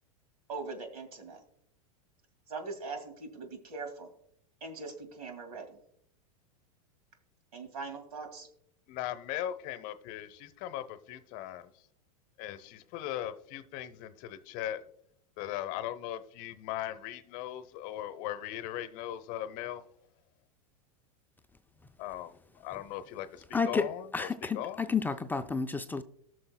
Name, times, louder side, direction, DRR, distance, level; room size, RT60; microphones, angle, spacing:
voice 1, 0.5-1.4 2.5-4.1 4.6-5.8 7.5-8.5, right 4 dB, 80° right, 2.2 m, -41 dB
voice 2, 8.9-11.7 12.4-14.8 15.4-19.8 22.0-24.3 24.5-24.9, left 12 dB, 50° left, 0.8 m, -39 dB
voice 3, 23.5-26.0, left 5 dB, 10° left, 0.4 m, -31 dB
19.0 x 6.4 x 2.2 m
hypercardioid pair, 110°, 19 cm